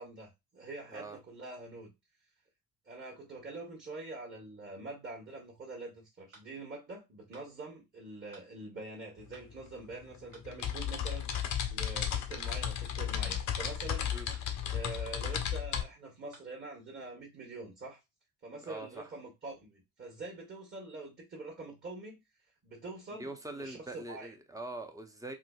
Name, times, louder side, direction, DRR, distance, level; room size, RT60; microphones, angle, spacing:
voice 1, 0.0-1.9 2.9-11.3 11.7-14.1 14.7-18.0 18.4-22.2 22.6-24.3, right 2 dB, 25° right, 1.2 m, -45 dB
sound 1, 6.3-6.5 7.3-7.5 8.3-8.5 9.3-9.5 10.3-10.5 11.3-11.5 12.3-12.5 13.3-13.5 14.3-14.5 15.3-15.5 16.3-16.5, right 3 dB, 85° right, 0.9 m, -56 dB
sound 2, 9.2-9.3 9.6-15.8, left 9 dB, 45° left, 0.6 m, -34 dB
voice 2, 18.6-19.1 23.2-25.3, right 2 dB, 10° right, 0.6 m, -43 dB
3.7 x 2.0 x 2.3 m
hypercardioid pair, 50°, 42 cm